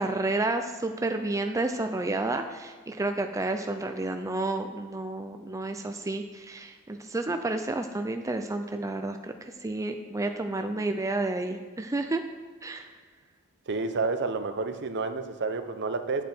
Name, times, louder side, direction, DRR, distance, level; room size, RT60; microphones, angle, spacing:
voice 1, 0.0-12.2 12.6-12.9, right 2 dB, 15° right, 6 dB, 0.5 m, -30 dB
voice 2, 13.7-16.2, right 3 dB, 55° right, 9 dB, 0.8 m, -30 dB
9.9 x 8.2 x 4.4 m, 1.5 s
head